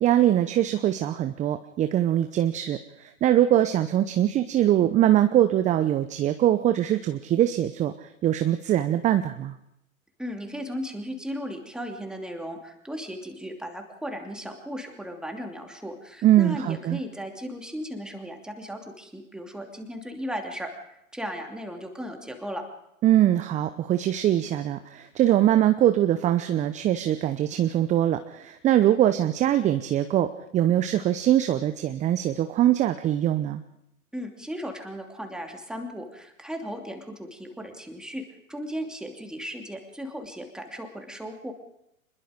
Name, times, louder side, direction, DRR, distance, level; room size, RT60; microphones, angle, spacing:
voice 1, 0.0-9.5 16.2-17.0 23.0-33.6, right 12 dB, 15° right, 10 dB, 0.7 m, -22 dB
voice 2, 10.2-22.6 34.1-41.5, equal, ahead, 3 dB, 2.8 m, -36 dB
25.0 x 21.5 x 5.2 m, 0.81 s
hypercardioid pair, 115°, 43 cm